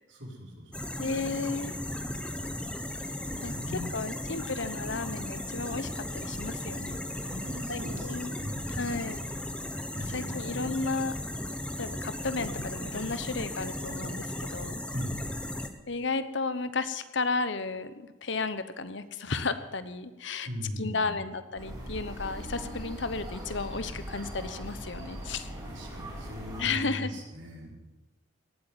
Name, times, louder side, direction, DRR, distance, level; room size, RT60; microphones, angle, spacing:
voice 1, 0.1-0.7 3.2-3.8 7.2-9.5 9.9-10.6 14.9-15.5 20.5-21.2 25.6-27.8, equal, 65° right, -1 dB, 4.9 m, -40 dB
sound 1, 0.7-15.7, left 1 dB, 5° left, 1.0 m, -36 dB
voice 2, 1.0-1.8 3.4-3.5 3.9-7.0 7.7-8.3 8.7-9.2 10.0-11.1 11.8-14.8 15.9-20.5 20.8-25.5 26.6-27.1, left 4 dB, 60° left, 12 dB, 1.0 m, -33 dB
sound 2, 21.6-26.7, equal, 20° right, 4.1 m, -40 dB
17.5 x 8.5 x 9.2 m, 1.1 s
head